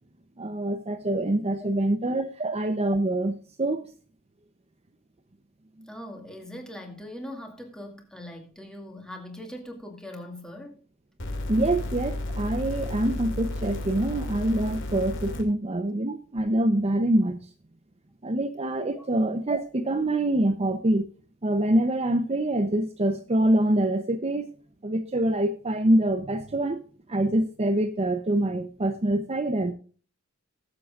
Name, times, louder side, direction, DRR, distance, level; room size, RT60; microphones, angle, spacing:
voice 1, 0.4-3.9 11.5-17.4 18.2-21.1 21.4-24.5 24.8-26.8 27.1-29.7, right 1 dB, 30° right, 0.7 m, -25 dB
voice 2, 5.9-10.8 18.9-19.1, left 1 dB, 5° left, 2.3 m, -41 dB
sound 1, 11.2-15.4 16.4-16.5, left 1 dB, 65° left, 2.6 m, -32 dB
20.0 x 7.7 x 2.5 m
head